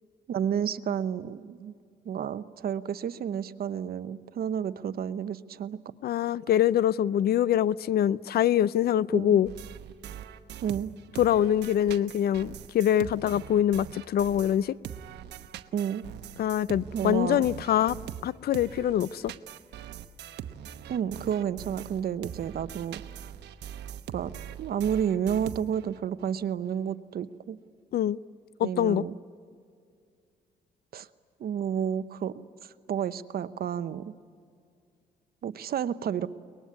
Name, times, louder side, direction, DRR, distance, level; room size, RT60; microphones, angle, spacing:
voice 1, 0.3-1.7 2.0-5.8 9.1-9.4 10.6-10.9 15.7-16.1 16.9-17.5 20.9-23.3 24.1-24.3 24.6-27.6 28.6-29.1 30.9-31.1 31.4-32.3 32.6-34.1 35.4-36.3, right 8 dB, 60° right, 0.9 m, -31 dB
voice 2, 6.0-9.5 11.2-14.8 16.4-18.0 18.2-19.3 27.9-28.2 28.6-29.0, left 11 dB, 65° left, 0.5 m, -24 dB
sound 1, 9.4-14.6 14.8-26.0, right 10 dB, 80° right, 1.0 m, -42 dB
22.5 x 20.5 x 9.6 m
cardioid pair, 70°, 17 cm